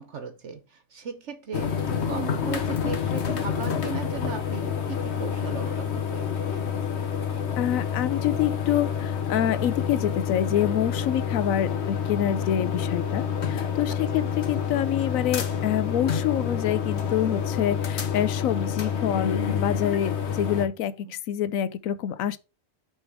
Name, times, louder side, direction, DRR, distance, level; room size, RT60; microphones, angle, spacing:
voice 1, 0.0-6.7 11.1-11.2 12.5-12.7 14.1-14.3 21.0-21.1, right 5 dB, 65° right, 1.2 m, -38 dB
sound 1, 1.5-20.7, left 7 dB, 60° left, 1.2 m, -28 dB
voice 2, 7.6-22.4, left 10 dB, 90° left, 1.0 m, -26 dB
6.3 x 3.5 x 6.1 m
omnidirectional pair, 1.4 m